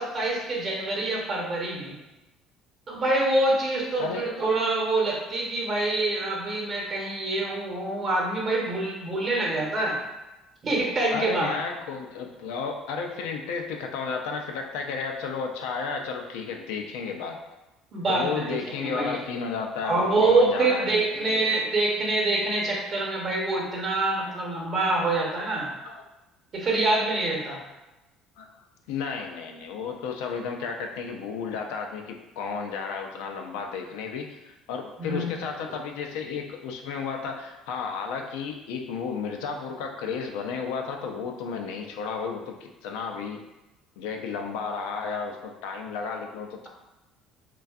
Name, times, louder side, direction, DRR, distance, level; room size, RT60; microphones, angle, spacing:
voice 1, 0.0-2.0 2.9-9.9 10.6-11.5 17.9-19.2 19.8-25.7 26.5-27.6 35.0-35.3, right 2 dB, 40° right, -2 dB, 0.8 m, -25 dB
voice 2, 11.1-17.4 18.1-21.6 24.2-24.3 25.8-26.0 28.4-28.5 28.9-43.4 44.0-46.7, left 5 dB, 85° left, 3 dB, 0.3 m, -33 dB
2.5 x 2.2 x 2.3 m, 1.0 s
supercardioid pair, 90°, 0 cm